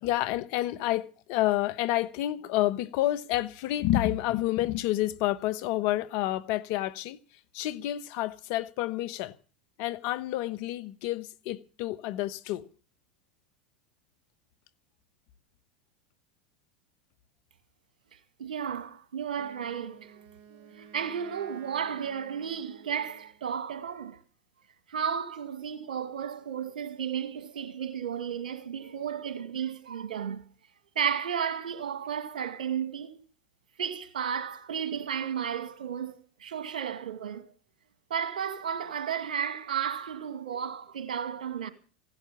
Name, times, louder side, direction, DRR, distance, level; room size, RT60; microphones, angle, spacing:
voice 1, 0.0-7.2 7.5-9.3 9.8-12.6, left 15 dB, 55° left, 1.1 m, -29 dB
voice 2, 18.1-20.2 20.5-24.2 24.9-30.4 31.0-33.2 33.8-37.5 38.1-41.7, right 8 dB, 80° right, 2.0 m, -33 dB
Wind instrument woodwind instrument, 19.3-23.5, right 7 dB, 45° right, 2.2 m, -54 dB
16.5 x 11.5 x 7.2 m
hypercardioid pair, 90°, 4 cm